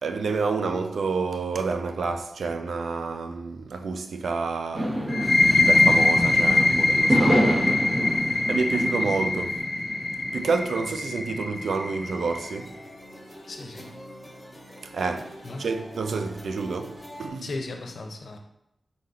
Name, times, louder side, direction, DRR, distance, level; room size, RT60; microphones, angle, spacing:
voice 1, 0.0-5.1 5.5-7.9 8.3-9.7 10.3-12.8 14.8-17.5, right 4 dB, 90° right, 0.3 m, -29 dB
sound 1, 4.7-6.5 7.1-9.3, equal, 40° right, 1.2 m, -26 dB
sound 2, 5.1-12.5, left 2 dB, 25° left, 0.5 m, -23 dB
sound 3, 12.0-17.3, equal, 5° right, 1.1 m, -44 dB
voice 2, 13.5-14.0 15.4-15.7 17.4-18.4, left 2 dB, 75° left, 0.6 m, -36 dB
4.0 x 3.9 x 2.7 m
wide cardioid pair, 80°, 0 cm